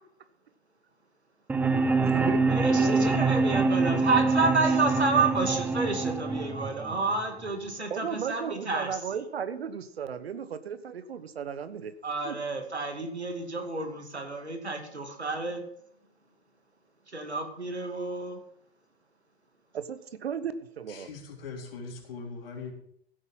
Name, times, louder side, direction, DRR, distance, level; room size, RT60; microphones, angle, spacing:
sound 1, 1.5-7.5, right 3 dB, 5° right, 0.5 m, -25 dB
voice 1, 2.0-2.5 2.7-3.3 7.9-11.9 12.2-12.4 19.7-21.1, right 7 dB, 70° right, 13 dB, 1.2 m, -35 dB
voice 2, 2.5-9.0 12.0-15.6 17.1-18.4, right 3 dB, 90° right, 4 dB, 2.5 m, -30 dB
voice 3, 20.9-22.7, left 4 dB, 60° left, 1 dB, 3.7 m, -41 dB
15.5 x 8.3 x 5.6 m, 0.68 s
figure-of-eight pair, 100°, 32 cm